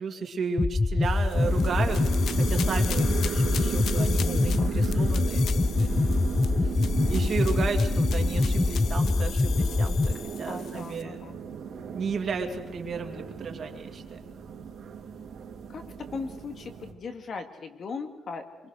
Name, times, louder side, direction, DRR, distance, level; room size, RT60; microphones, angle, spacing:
voice 1, 0.0-2.0 2.4-6.7 7.1-11.2 11.9-14.3, right 5 dB, 45° right, 4 dB, 2.6 m, -34 dB
sound 1, 0.6-10.1, left 3 dB, 20° left, 0.7 m, -24 dB
sound 2, 1.0-11.0, left 9 dB, 60° left, 0.8 m, -40 dB
sound 3, 1.3-16.9, right 6 dB, 60° right, 3.2 m, -35 dB
voice 2, 4.2-4.7 10.5-11.4 15.7-18.7, left 4 dB, 45° left, 6 dB, 2.2 m, -39 dB
25.0 x 23.5 x 6.5 m, 1.1 s
cardioid pair, 135°, 0 cm